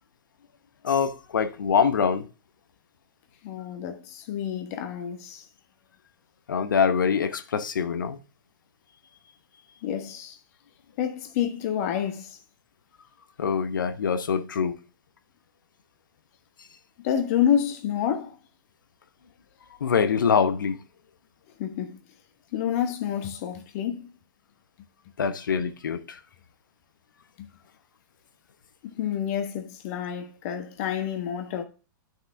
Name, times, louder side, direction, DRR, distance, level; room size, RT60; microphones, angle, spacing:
voice 1, 0.8-2.3 6.5-8.2 13.4-14.8 19.8-20.8 25.2-26.2, left 6 dB, 65° left, 1.0 m, -24 dB
voice 2, 3.4-5.5 9.8-10.4 11.0-12.4 17.0-18.4 21.6-22.0 22.5-24.1 27.4-27.5 28.8-31.6, left 9 dB, 45° left, 1.4 m, -28 dB
9.8 x 6.1 x 3.4 m
figure-of-eight pair, 105°, 11 cm